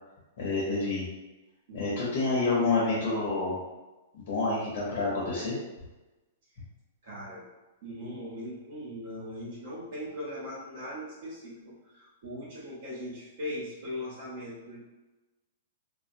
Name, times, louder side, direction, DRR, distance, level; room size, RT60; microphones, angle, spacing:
voice 1, 0.4-1.0 1.7-3.6 4.1-5.6, left 3 dB, 60° left, -5 dB, 0.8 m, -28 dB
voice 2, 7.0-7.4 7.8-14.8, left 1 dB, 60° right, -8 dB, 0.9 m, -39 dB
2.2 x 2.1 x 2.7 m, 1.1 s
hypercardioid pair, 140°, 0 cm